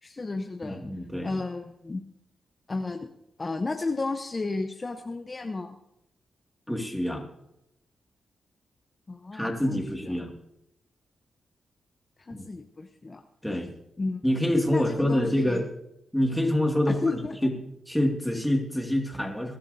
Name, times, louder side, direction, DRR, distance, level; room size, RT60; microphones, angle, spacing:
voice 1, 0.0-0.8 1.2-2.0 2.7-3.1 3.4-5.8 9.1-10.1 12.2-13.2 14.0-14.2 14.7-15.6 16.9-17.5, left 3 dB, 35° left, 6 dB, 0.8 m, -32 dB
voice 2, 0.6-1.3 6.7-7.2 9.3-10.3 12.3-12.4 13.4-13.7 14.2-15.7 16.1-17.5 17.9-19.6, left 1 dB, 5° left, 2 dB, 2.2 m, -26 dB
22.0 x 11.5 x 2.7 m, 0.81 s
cardioid pair, 75°, 0 cm